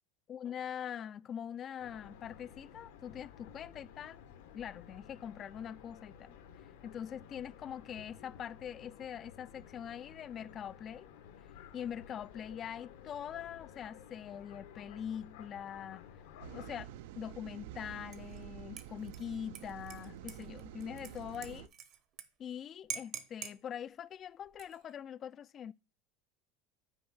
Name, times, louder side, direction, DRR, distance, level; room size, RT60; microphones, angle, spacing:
voice 1, 0.3-4.2 4.5-6.3 6.8-11.1 11.7-16.1 16.5-21.7 22.4-25.7, left 9 dB, 30° left, 0.3 m, -43 dB
sound 1, 1.8-16.8, left 8 dB, 85° left, 1.2 m, -54 dB
sound 2, 16.4-21.7, right 11 dB, 80° right, 0.6 m, -49 dB
Dishes pots and pans / Liquid, 18.1-18.4 18.8-22.2 22.5-22.6 22.9-23.6 24.4-24.9, right 9 dB, 40° right, 0.8 m, -46 dB
6.2 x 4.7 x 6.0 m
cardioid pair, 160°, 0 cm